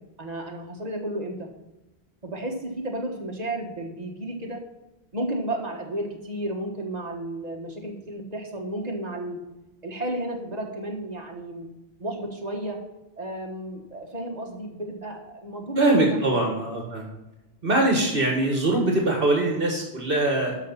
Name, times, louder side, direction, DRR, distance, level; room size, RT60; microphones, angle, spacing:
voice 1, 0.2-1.5 2.2-4.6 5.1-9.4 9.8-11.7 12.0-12.8 13.2-16.3, right 1 dB, 40° right, 1 dB, 1.7 m, -33 dB
voice 2, 15.8-17.1 17.6-20.6, right 2 dB, 60° right, 0 dB, 1.9 m, -22 dB
12.0 x 5.7 x 4.2 m, 1.0 s
omnidirectional pair, 1.1 m